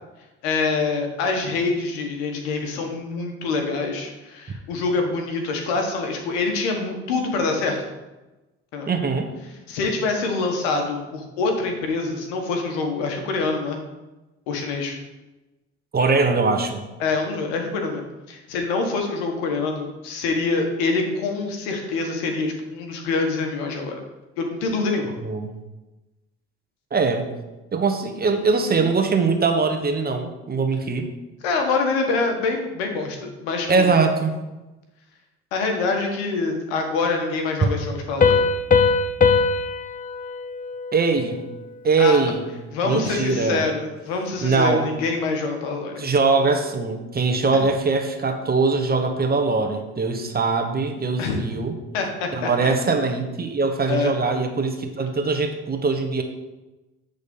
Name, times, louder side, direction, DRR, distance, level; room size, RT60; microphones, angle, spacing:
voice 1, 0.4-7.9 8.7-8.9 9.7-13.8 14.5-15.0 17.0-18.0 18.3-24.0 24.4-25.1 31.4-33.9 35.5-38.3 42.0-42.2 42.7-46.0 47.5-47.6 51.2-51.4 51.9-52.5 53.9-54.1, left 3 dB, 90° left, 3 dB, 1.4 m, -25 dB
voice 2, 8.9-9.3 15.9-16.8 25.2-25.5 26.9-27.3 27.7-31.0 33.7-34.3 40.9-41.4 41.8-42.4 42.8-43.6 44.4-44.9 46.0-51.7 52.3-56.2, right 4 dB, 30° right, 5 dB, 1.2 m, -22 dB
Piano, 38.2-41.6, left 4 dB, 25° left, 0.7 m, -21 dB
8.3 x 4.1 x 5.4 m, 1.1 s
supercardioid pair, 75°, 30 cm